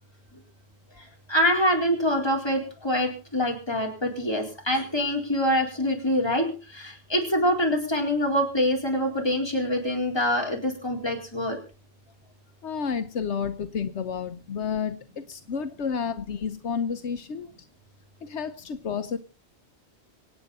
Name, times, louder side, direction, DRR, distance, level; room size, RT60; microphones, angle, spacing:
voice 1, 1.0-11.6, equal, 20° left, 0 dB, 4.2 m, -25 dB
voice 2, 12.6-17.5 18.2-19.2, left 6 dB, 80° left, 9 dB, 1.2 m, -30 dB
25.0 x 9.1 x 4.2 m, 0.35 s
omnidirectional pair, 1.2 m